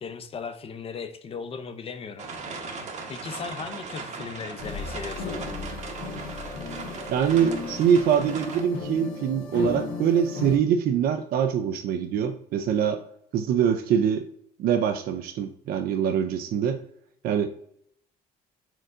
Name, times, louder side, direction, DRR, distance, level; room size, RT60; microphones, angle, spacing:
voice 1, 0.0-2.3 3.1-5.4, left 5 dB, 35° left, 10 dB, 0.4 m, -37 dB
sound 1, 2.2-8.6, right 4 dB, 45° right, 0.8 m, -38 dB
sound 2, 4.6-10.6, left 4 dB, 70° left, 1.0 m, -35 dB
voice 2, 7.1-13.0 13.3-14.3 14.6-16.8 17.2-17.5, right 8 dB, 60° right, 6 dB, 0.4 m, -24 dB
4.4 x 3.8 x 2.4 m, 0.69 s
cardioid pair, 110°, 17 cm